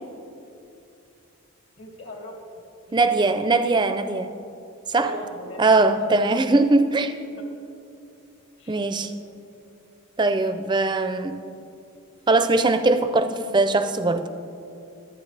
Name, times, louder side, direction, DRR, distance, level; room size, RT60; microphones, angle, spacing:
voice 1, 1.8-3.3 4.3-4.5 4.9-6.3 8.6-9.1, left 1 dB, 60° left, 1 dB, 2.0 m, -41 dB
voice 2, 2.9-4.3 4.9-5.1 5.6-7.1 8.7-9.1 10.2-11.4 12.3-14.3, right 3 dB, 20° right, 9 dB, 0.5 m, -20 dB
23.0 x 9.0 x 3.3 m, 2.7 s
head